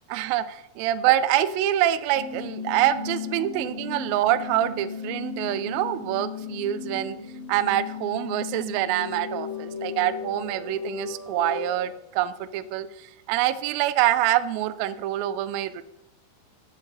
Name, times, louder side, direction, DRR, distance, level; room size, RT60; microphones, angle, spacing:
voice 1, 0.1-7.2 7.5-15.8, right 12 dB, 90° right, 13 dB, 2.1 m, -25 dB
sound 1, 2.1-11.7, left 5 dB, 50° right, 3.2 m, -36 dB
12.0 x 7.1 x 3.3 m, 0.92 s
omnidirectional pair, 4.7 m